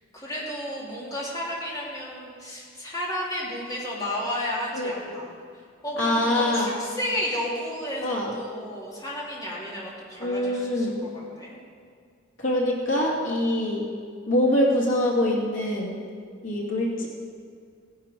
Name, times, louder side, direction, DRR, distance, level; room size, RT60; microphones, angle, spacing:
voice 1, 0.1-11.6, equal, 20° left, -6 dB, 3.2 m, -33 dB
voice 2, 4.7-5.1 6.0-6.7 8.0-8.3 10.2-11.0 12.4-13.9 14.3-16.0 16.4-17.1, left 1 dB, 80° left, -3 dB, 2.4 m, -24 dB
17.0 x 11.0 x 4.5 m, 2.1 s
head